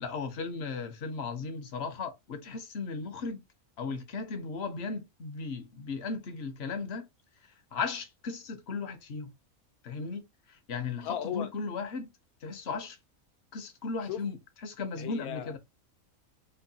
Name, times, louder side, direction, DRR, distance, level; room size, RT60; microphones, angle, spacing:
voice 1, 0.0-3.4 3.8-7.1 7.7-9.3 9.8-12.1 12.4-13.0 13.5-15.6, left 4 dB, 55° left, 0.8 m, -36 dB
voice 2, 11.0-11.5 14.0-14.3 15.0-15.6, left 10 dB, 85° left, 1.1 m, -36 dB
4.3 x 2.2 x 2.6 m
omnidirectional pair, 1.5 m